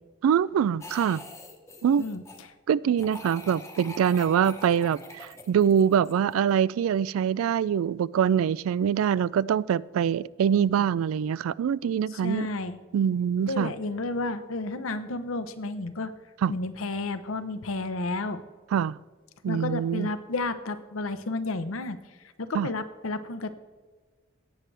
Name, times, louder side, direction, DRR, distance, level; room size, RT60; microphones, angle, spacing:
voice 1, 0.2-1.2 1.8-2.1 2.7-12.5 12.9-13.7 16.4-16.5 18.7-19.0 19.4-20.1 22.5-22.7, right 8 dB, 85° right, 18 dB, 0.3 m, -24 dB
sound 1, 0.8-2.4 3.0-6.5, left 2 dB, 15° left, 1.0 m, -44 dB
voice 2, 11.8-12.8 13.5-16.1 16.5-18.4 19.5-22.0 22.4-23.5, left 2 dB, 85° left, 11 dB, 0.8 m, -31 dB
17.5 x 7.6 x 3.3 m, 1.3 s
head